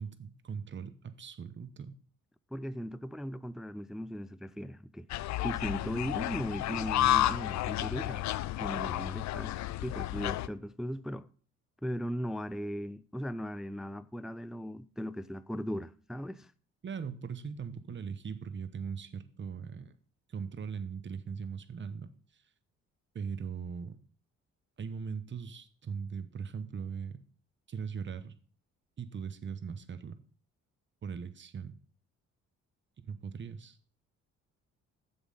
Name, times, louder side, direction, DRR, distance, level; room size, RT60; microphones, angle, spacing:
voice 1, 0.0-2.0 16.8-19.9 20.3-22.1 23.1-24.0 24.8-27.2 27.7-28.3 29.0-30.2 31.0-31.7 33.0-33.8, right 6 dB, 40° right, 1.0 m, -40 dB
voice 2, 2.5-5.1 5.4-8.3 8.6-11.3 11.8-16.5, equal, ahead, 0.3 m, -38 dB
sound 1, 5.1-10.5, left 14 dB, 65° left, 0.5 m, -31 dB
7.2 x 7.2 x 5.6 m
cardioid pair, 90°, 30 cm